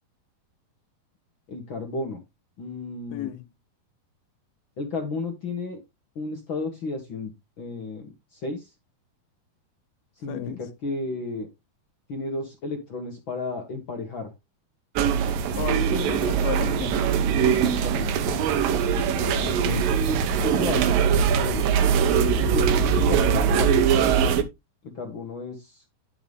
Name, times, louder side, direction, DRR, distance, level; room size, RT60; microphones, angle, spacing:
voice 1, 1.5-2.2 2.6-3.3 4.8-5.8 6.1-8.7 10.2-11.5 12.1-14.3 17.4-18.2 18.6-19.1 19.7-21.0 21.3-21.7 22.1-23.9 24.8-25.8, left 3 dB, 55° left, 1.4 m, -33 dB
voice 2, 3.1-3.4 10.3-10.6 15.6-17.1 19.1-19.8, left 11 dB, 80° left, 2.8 m, -33 dB
sound 1, 15.0-24.4, right 7 dB, 75° right, 2.6 m, -22 dB
11.0 x 5.9 x 3.4 m
omnidirectional pair, 4.3 m